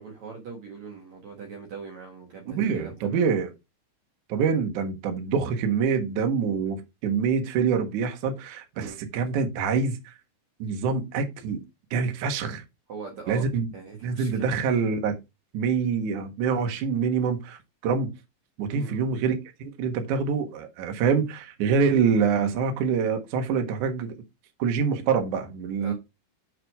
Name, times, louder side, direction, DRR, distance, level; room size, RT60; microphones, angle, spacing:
voice 1, 0.0-3.2 8.8-9.0 12.9-13.5 13.7-14.5 18.7-19.0 25.8-25.9, right 5 dB, 70° right, 1.7 m, -41 dB
voice 2, 2.5-3.5 4.3-10.1 10.6-11.6 11.9-12.6 13.3-13.7 14.0-15.2 15.5-18.1 18.6-19.3 19.6-24.1 24.6-25.9, right 6 dB, 90° right, 1.7 m, -25 dB
7.2 x 6.1 x 3.6 m
omnidirectional pair, 5.9 m